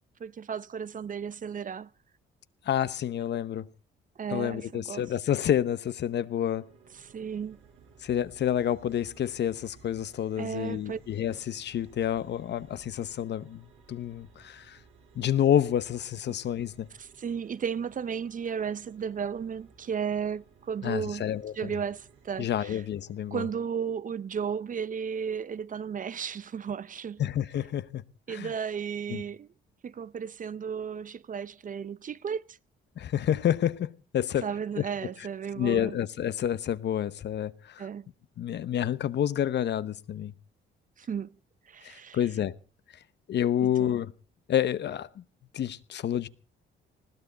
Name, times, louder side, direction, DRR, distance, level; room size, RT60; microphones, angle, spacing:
voice 1, 0.2-1.9 4.2-5.1 6.9-7.6 10.4-11.0 11.3-11.4 16.3-16.4 17.0-21.2 21.5-22.8 23.3-27.2 28.3-29.5 29.8-32.6 34.4-36.0 37.8-38.1 41.0-41.4 41.7-42.2 43.6-43.9, right 7 dB, 40° right, 0.7 m, -34 dB
voice 2, 2.7-3.7 4.3-6.7 8.0-14.8 15.2-16.9 20.8-21.5 22.4-23.4 27.2-28.0 28.3-28.5 29.1-29.2 33.0-34.5 34.8-34.9 35.6-37.8 38.4-40.3 41.8-42.6 43.3-44.1 44.5-45.2 45.5-46.3, left 10 dB, 60° left, 0.9 m, -29 dB
sound 1, 6.1-23.5, right 5 dB, 85° right, 4.8 m, -58 dB
20.0 x 16.0 x 4.0 m
cardioid pair, 90°, 20 cm